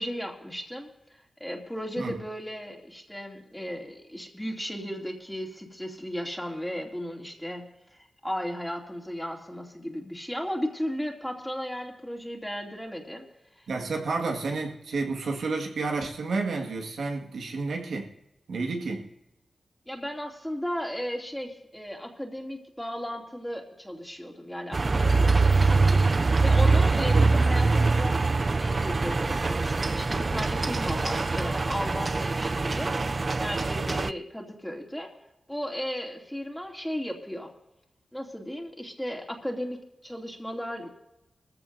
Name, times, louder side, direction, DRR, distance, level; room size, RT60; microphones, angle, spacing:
voice 1, 0.0-7.6 7.9-13.2 13.6-13.7 19.9-26.1 26.4-28.2 28.6-32.9 33.4-35.1 35.5-37.5 38.1-39.8 40.0-41.0, equal, 5° left, 0 dB, 2.6 m, -35 dB
voice 2, 13.7-18.1 18.5-19.1 26.9-27.6, right 3 dB, 90° right, 1 dB, 1.8 m, -31 dB
sound 1, 24.7-34.1, right 3 dB, 45° right, 0.3 m, -23 dB
20.5 x 14.5 x 2.7 m, 0.90 s
cardioid pair, 60°, 0 cm